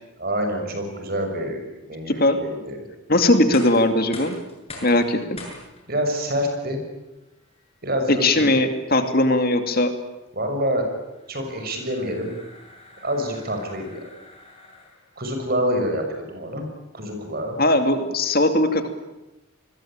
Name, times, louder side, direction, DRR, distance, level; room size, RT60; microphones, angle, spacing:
voice 1, 0.2-2.8 5.9-6.8 7.8-8.5 10.3-11.0 11.3-12.3 13.0-14.0 15.2-16.6 16.9-17.6, equal, 45° right, 5 dB, 6.2 m, -26 dB
voice 2, 2.1-2.4 3.1-4.4 4.8-5.4 8.1-9.9 17.6-18.9, left 1 dB, 45° left, 8 dB, 2.4 m, -19 dB
sound 1, 3.3-15.2, left 2 dB, 30° left, 7.5 m, -45 dB
28.5 x 21.0 x 8.9 m, 0.98 s
head